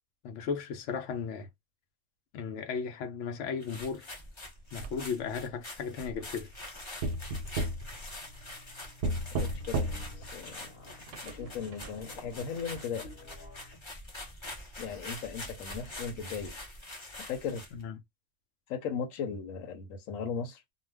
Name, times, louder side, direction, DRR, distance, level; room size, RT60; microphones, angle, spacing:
voice 1, 0.2-1.5 2.3-4.1 4.7-6.5 17.7-18.0, left 6 dB, 70° left, 0.9 m, -35 dB
sound 1, 3.6-17.8, left 2 dB, 30° left, 0.7 m, -45 dB
sound 2, 4.8-5.4 6.0-6.7 7.0-8.6 9.0-10.3 11.1-11.9, right 1 dB, 65° right, 0.8 m, -34 dB
sound 3, 8.1-13.9, left 1 dB, 50° left, 1.1 m, -52 dB
voice 2, 9.4-10.7 11.2-13.1 14.8-16.6 17.2-17.7 18.7-20.6, left 6 dB, 90° left, 1.0 m, -37 dB
2.4 x 2.2 x 3.3 m
omnidirectional pair, 1.4 m